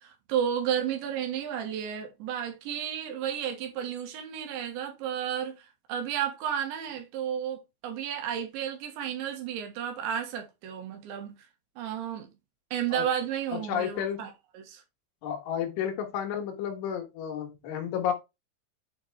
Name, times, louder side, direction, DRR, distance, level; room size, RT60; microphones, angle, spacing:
voice 1, 0.0-5.6 5.9-11.4 11.8-12.3 12.7-14.3 14.6-14.8, right 9 dB, 75° right, 3.6 m, -32 dB
voice 2, 13.5-14.3 15.2-18.1, left 9 dB, 80° left, 3.8 m, -31 dB
8.4 x 5.1 x 3.4 m
omnidirectional pair, 5.5 m